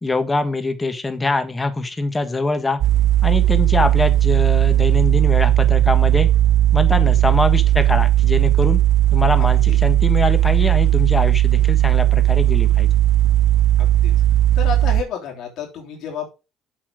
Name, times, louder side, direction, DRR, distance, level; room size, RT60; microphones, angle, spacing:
voice 1, 0.0-2.8 3.2-6.3 6.7-8.8 9.1-12.9, left 2 dB, 20° left, 9 dB, 1.4 m, -23 dB
sound 1, 2.8-15.0, right 13 dB, 65° right, 0.6 m, -16 dB
voice 2, 13.8-14.1 14.5-16.3, left 7 dB, 70° left, 1 dB, 3.1 m, -30 dB
7.8 x 4.3 x 5.1 m, 0.29 s
supercardioid pair, 85°, 0 cm